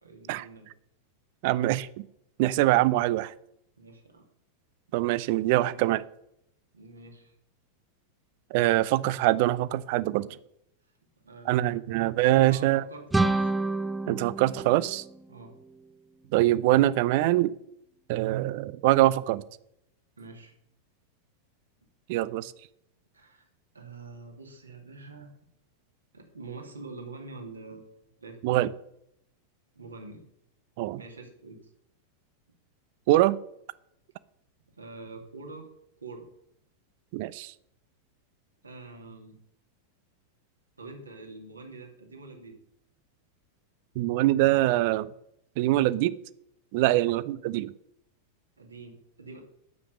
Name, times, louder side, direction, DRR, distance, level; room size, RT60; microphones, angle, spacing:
voice 1, 0.0-0.7 3.8-4.2 6.7-7.4 11.2-11.8 12.3-13.5 15.3-15.5 20.2-20.5 21.8-21.9 23.1-23.5 23.7-25.3 26.1-28.6 29.7-30.2 31.0-31.7 32.5-32.6 34.7-35.7 36.0-36.3 38.6-39.4 40.8-42.6 48.6-49.4, right 3 dB, 75° right, 2 dB, 2.5 m, -45 dB
voice 2, 1.4-2.0 2.4-3.3 4.9-6.0 8.5-10.3 11.5-12.8 14.1-15.0 16.3-17.5 18.1-19.4 22.1-22.5 28.4-28.7 30.8-31.0 33.1-33.4 37.1-37.5 44.0-45.1 45.6-46.1 46.7-47.7, right 16 dB, 50° right, 18 dB, 0.5 m, -24 dB
sound 1, 13.1-15.9, right 2 dB, 10° right, 0.6 m, -29 dB
9.5 x 7.7 x 6.8 m, 0.75 s
figure-of-eight pair, 90°, 0 cm